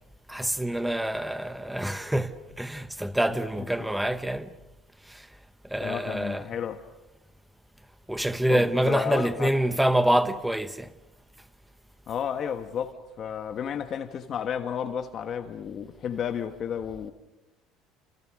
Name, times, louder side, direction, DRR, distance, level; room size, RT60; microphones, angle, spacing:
voice 1, 0.3-4.5 5.1-5.3 5.6-6.4 8.1-10.9, right 1 dB, 5° right, 0.9 m, -26 dB
voice 2, 3.3-3.9 5.8-6.9 8.5-9.5 12.1-17.1, left 8 dB, 35° left, 1.3 m, -32 dB
30.0 x 27.0 x 6.4 m
cardioid pair, 155°, 0 cm